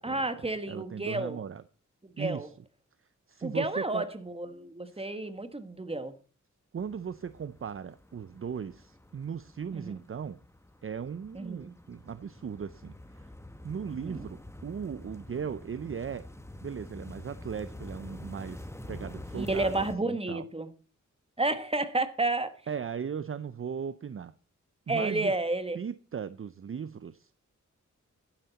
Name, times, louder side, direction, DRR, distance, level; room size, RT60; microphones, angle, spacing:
voice 1, 0.0-1.4 2.0-2.5 3.4-6.2 9.7-9.9 11.3-11.7 13.9-14.3 19.3-20.7 21.4-22.5 24.9-25.8, right 2 dB, 20° right, 1.4 m, -31 dB
voice 2, 0.7-1.6 2.2-2.5 3.3-4.1 4.9-5.0 6.7-10.4 10.8-13.3 13.6-16.3 16.6-20.4 22.7-24.3 24.9-25.3 25.7-27.3, right 7 dB, 45° right, 0.5 m, -37 dB
sound 1, 6.8-19.9, left 1 dB, 10° left, 1.0 m, -47 dB
11.5 x 10.0 x 4.1 m
wide cardioid pair, 75°, 31 cm